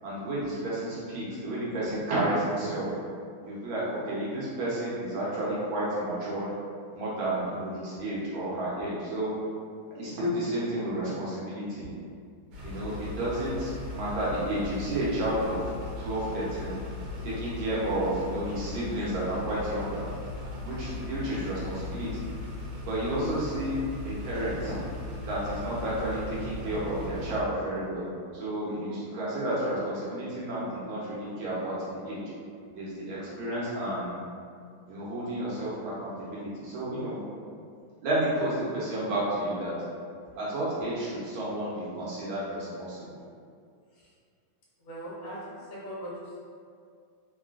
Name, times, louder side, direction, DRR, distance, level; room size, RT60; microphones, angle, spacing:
voice 1, 0.0-2.9 3.4-6.5 6.9-9.3 9.9-11.9 12.6-15.6 16.0-16.8 17.2-20.1 20.6-22.3 22.8-23.8 24.0-24.8 25.2-28.1 28.3-32.2 32.7-34.2 34.9-37.2 38.0-39.8 40.4-43.2, right 1 dB, 70° right, -8 dB, 1.6 m, -31 dB
sound 1, 12.5-27.4, left 3 dB, 90° right, 1.6 m, -38 dB
voice 2, 44.8-46.4, equal, 75° left, -7 dB, 1.6 m, -40 dB
3.9 x 2.3 x 2.4 m, 2.2 s
omnidirectional pair, 2.3 m